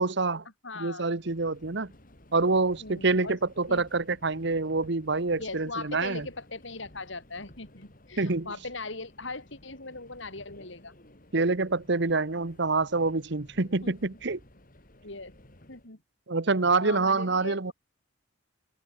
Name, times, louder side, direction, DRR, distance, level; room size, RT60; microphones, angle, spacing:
voice 1, 0.0-0.5 0.8-1.9 2.3-6.3 8.2-8.5 11.3-14.4 16.3-17.7, right 3 dB, 60° right, 1.1 m, -26 dB
voice 2, 0.6-1.1 2.8-3.4 3.7-3.8 5.4-10.9 13.6-13.9 15.0-15.3 15.7-16.0 16.8-17.7, left 3 dB, 65° left, 4.5 m, -40 dB
Subway metro underground, 1.1-15.9, left 1 dB, 45° left, 4.1 m, -55 dB
head